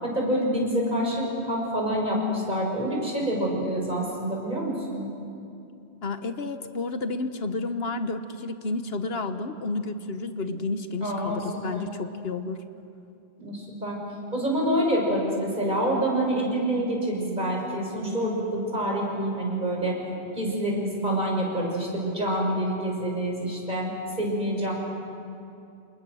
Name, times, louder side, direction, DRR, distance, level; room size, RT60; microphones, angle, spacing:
voice 1, 0.0-5.1 11.0-11.4 11.7-11.9 13.4-14.0 14.3-20.0 20.3-23.9 24.2-24.7, right 1 dB, 45° right, -1 dB, 6.0 m, -27 dB
voice 2, 6.0-12.6, left 3 dB, 70° left, 9 dB, 1.3 m, -31 dB
28.0 x 28.0 x 6.4 m, 2.6 s
omnidirectional pair, 1.1 m